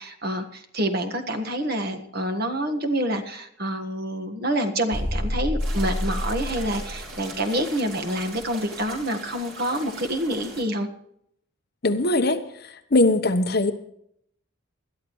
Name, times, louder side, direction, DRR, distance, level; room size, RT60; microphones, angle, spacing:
voice 1, 0.0-10.9, right 1 dB, 45° right, 5 dB, 1.5 m, -27 dB
sound 1, 4.9-7.6, left 1 dB, 5° right, 5.6 m, -28 dB
sound 2, 5.6-10.6, right 2 dB, 80° right, 5.1 m, -40 dB
voice 2, 11.8-12.4 12.9-13.7, left 2 dB, 45° left, 7 dB, 1.0 m, -20 dB
21.0 x 12.0 x 3.1 m, 0.71 s
head